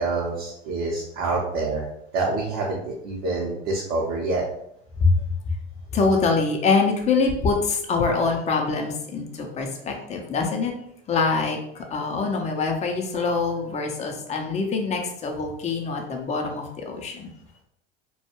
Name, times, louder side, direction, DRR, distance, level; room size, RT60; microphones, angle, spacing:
voice 1, 0.0-1.9 2.1-4.4, right 3 dB, 60° right, -4 dB, 0.7 m, -26 dB
voice 2, 5.9-10.7 11.1-17.3, left 4 dB, 20° left, 2 dB, 0.5 m, -24 dB
2.2 x 2.1 x 2.9 m, 0.73 s
hypercardioid pair, 75°, 31 cm